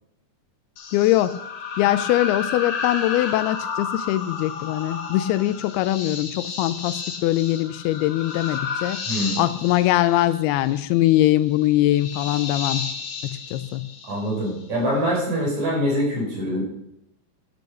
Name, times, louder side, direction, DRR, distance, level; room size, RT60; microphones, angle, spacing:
sound 1, 0.8-14.6, left 5 dB, 60° left, 1.4 m, -32 dB
voice 1, 0.9-1.4 1.8-9.0 9.4-12.9 13.5-13.9, left 14 dB, 85° left, 14 dB, 2.5 m, -22 dB
voice 2, 9.1-9.5 14.1-16.6, equal, 45° right, -2 dB, 5.5 m, -24 dB
11.5 x 8.5 x 6.6 m, 0.80 s
omnidirectional pair, 4.6 m